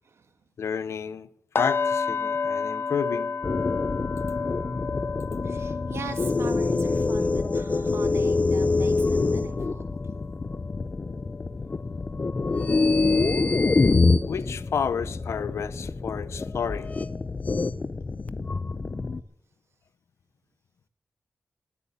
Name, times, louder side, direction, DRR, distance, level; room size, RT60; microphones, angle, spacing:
voice 1, 0.6-1.3 1.6-3.3 14.2-16.9, left 7 dB, 85° left, 0.8 m, -30 dB
sound 1, 1.5-11.5 11.8-12.1 12.5-12.7, left 5 dB, 55° left, 1.0 m, -33 dB
sound 2, 3.4-19.2, left 3 dB, 35° left, 0.5 m, -26 dB
voice 2, 5.4-9.8, right 5 dB, 75° right, 1.5 m, -41 dB
20.5 x 8.5 x 7.1 m
wide cardioid pair, 150°, 5 cm